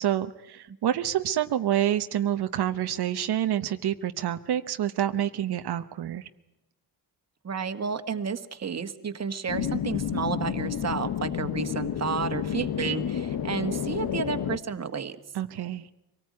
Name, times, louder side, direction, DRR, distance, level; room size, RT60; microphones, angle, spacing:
voice 1, 0.0-6.3 15.3-15.8, right 11 dB, 85° right, 8 dB, 1.0 m, -27 dB
voice 2, 7.4-15.2, right 6 dB, 40° right, 9 dB, 1.6 m, -31 dB
sound 1, 9.5-14.6, left 9 dB, 65° left, 1.1 m, -30 dB
25.0 x 18.5 x 9.5 m, 0.90 s
wide cardioid pair, 125°, 38 cm